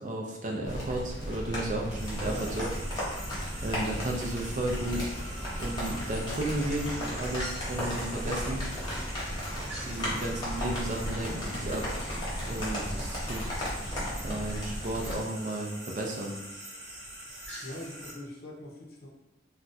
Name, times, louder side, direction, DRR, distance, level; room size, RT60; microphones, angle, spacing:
voice 1, 0.0-2.7 3.6-5.1 5.6-8.7 9.8-11.9 12.5-13.5 14.2-16.4, right 1 dB, 40° right, 0 dB, 0.4 m, -33 dB
sound 1, 0.6-15.1, equal, 25° left, 1.0 m, -35 dB
sound 2, 2.0-18.1, right 1 dB, 65° right, 1.1 m, -44 dB
voice 2, 2.2-2.7 9.9-10.2 17.6-19.1, left 1 dB, 55° left, -2 dB, 0.7 m, -43 dB
sound 3, 4.6-12.8, equal, 15° right, 0.8 m, -46 dB
2.5 x 2.2 x 4.0 m, 0.96 s
head